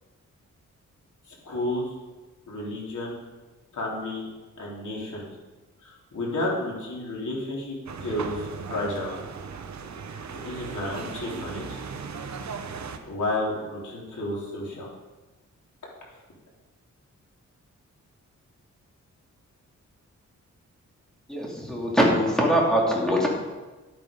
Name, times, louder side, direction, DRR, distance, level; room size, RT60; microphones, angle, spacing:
voice 1, 1.3-1.9 2.5-3.1 3.7-4.3 4.6-5.3 5.8-9.1 10.3-11.8 13.1-14.9, left 1 dB, 75° left, -4 dB, 3.7 m, -31 dB
sound 1, 7.9-13.0, right 5 dB, 65° right, 0.9 m, -37 dB
voice 2, 21.3-23.3, equal, ahead, -3 dB, 2.7 m, -22 dB
11.5 x 8.8 x 5.3 m, 1.2 s
wide cardioid pair, 140°, 30 cm